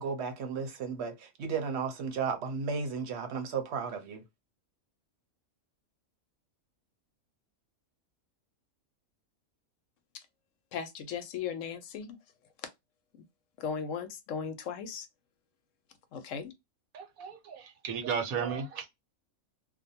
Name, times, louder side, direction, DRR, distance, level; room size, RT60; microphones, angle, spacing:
voice 1, 0.0-4.2, right 5 dB, 60° right, 0.9 m, -34 dB
voice 2, 10.7-12.2 13.1-13.2 13.6-15.1 16.1-16.5, left 7 dB, 70° left, 0.9 m, -37 dB
voice 3, 16.9-18.9, right 6 dB, 85° right, 1.2 m, -34 dB
2.5 x 2.2 x 2.6 m
omnidirectional pair, 1.4 m